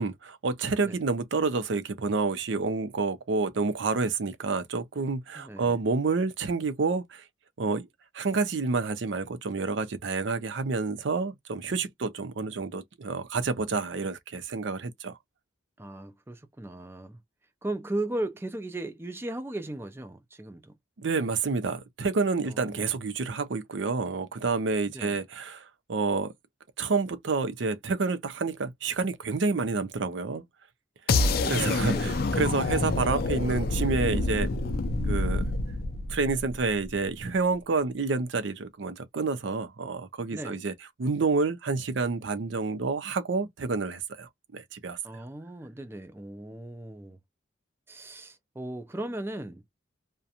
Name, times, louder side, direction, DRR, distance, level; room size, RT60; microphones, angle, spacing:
voice 1, 0.0-7.2 7.6-7.9 8.1-15.2 21.0-26.3 26.8-30.4 31.5-34.5 35.1-35.5 36.1-40.7 41.0-45.0, right 4 dB, 70° right, 0.5 m, -29 dB
voice 2, 5.4-5.8 15.8-17.2 17.6-20.7 22.4-22.9 24.9-25.2 31.1-32.3 40.3-40.6 45.0-47.2 47.9-49.6, right 1 dB, 10° right, 0.4 m, -37 dB
sound 1, 31.1-37.1, left 3 dB, 50° left, 0.4 m, -27 dB
2.5 x 2.1 x 2.7 m
head